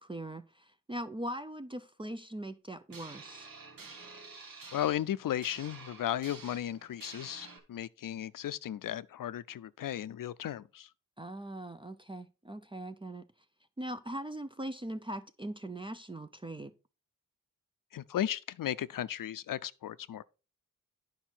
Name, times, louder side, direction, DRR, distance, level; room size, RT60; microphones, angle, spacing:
voice 1, 0.0-3.5 11.2-13.3 13.8-16.7, right 1 dB, 15° right, 0.4 m, -41 dB
sound 1, 2.9-7.6, right 4 dB, 85° right, 1.7 m, -49 dB
voice 2, 4.7-10.9 17.9-20.2, left 11 dB, 75° left, 0.5 m, -35 dB
9.9 x 5.2 x 4.4 m
wide cardioid pair, 100°, 33 cm